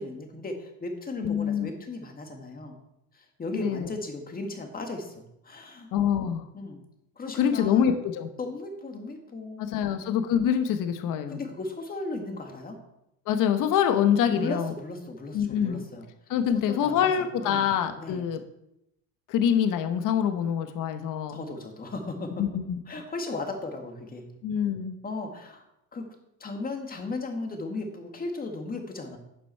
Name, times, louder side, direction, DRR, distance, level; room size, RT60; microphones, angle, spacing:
voice 1, 0.0-2.7 3.1-5.9 6.5-6.8 7.2-7.9 8.4-10.2 11.3-12.8 14.3-16.1 16.7-17.7 18.0-18.2 21.3-22.4 22.9-24.3 25.0-25.6 25.9-26.1 26.4-29.2, left 2 dB, 20° left, 4 dB, 1.8 m, -36 dB
voice 2, 1.2-1.7 3.5-3.9 5.9-6.5 7.3-8.3 9.6-11.4 13.3-14.7 15.3-15.9 16.3-18.4 19.3-21.4 22.4-22.8 24.4-25.0, left 8 dB, 50° left, 8 dB, 1.1 m, -25 dB
11.0 x 6.9 x 4.5 m, 0.83 s
cardioid pair, 125°, 40 cm